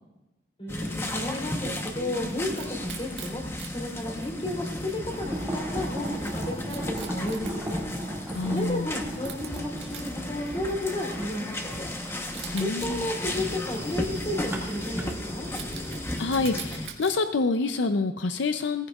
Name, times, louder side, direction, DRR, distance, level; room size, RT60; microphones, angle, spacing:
voice 1, 0.6-3.4 3.7-7.9 8.4-11.9 12.6-15.0 15.3-15.5, left 1 dB, 30° left, -1 dB, 3.5 m, -33 dB
sound 1, 0.7-16.9, left 1 dB, 15° left, 0.9 m, -34 dB
Wild animals, 1.2-17.1, right 8 dB, 70° right, 1.9 m, -47 dB
sound 2, 5.1-16.0, right 1 dB, 10° right, 2.1 m, -38 dB
voice 2, 8.3-8.9 12.5-13.1 16.2-18.9, left 3 dB, 80° left, 8 dB, 0.5 m, -27 dB
18.5 x 15.0 x 2.4 m, 1.0 s
head